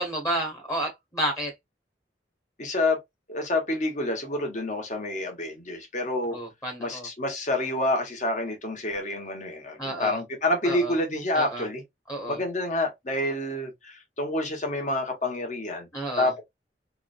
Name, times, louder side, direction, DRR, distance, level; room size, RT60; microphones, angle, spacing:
voice 1, 0.0-1.5 6.3-7.1 9.8-10.1 10.6-10.9 11.3-11.6 12.1-12.4 15.9-16.3, right 1 dB, 20° left, 1.3 m, -31 dB
voice 2, 2.6-3.0 3.3-6.4 6.8-11.8 12.3-15.9 16.2-16.4, left 1 dB, 45° left, 1.5 m, -28 dB
3.6 x 3.3 x 2.6 m
head